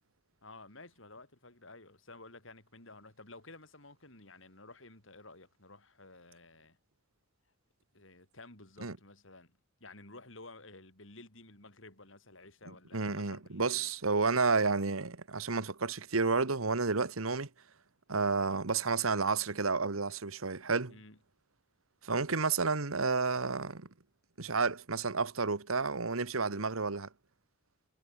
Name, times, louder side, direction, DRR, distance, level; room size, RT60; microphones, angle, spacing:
voice 1, 0.4-6.8 7.9-13.9 20.9-21.2, left 2 dB, 65° left, 6.4 m, -53 dB
voice 2, 12.9-17.5 18.1-20.9 22.0-23.9 24.4-27.1, right 4 dB, 90° right, 1.5 m, -31 dB
head